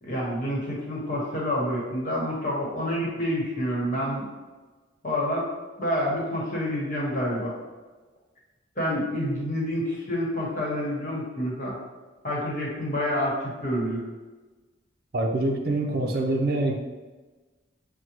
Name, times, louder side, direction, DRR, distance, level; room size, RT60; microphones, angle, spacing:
voice 1, 0.0-4.3 5.0-5.5 5.8-7.6 8.8-11.7 12.2-14.0, equal, 45° left, -5 dB, 1.2 m, -28 dB
voice 2, 15.1-16.7, right 2 dB, 55° right, 2 dB, 0.5 m, -25 dB
6.3 x 2.2 x 3.0 m, 1.3 s
head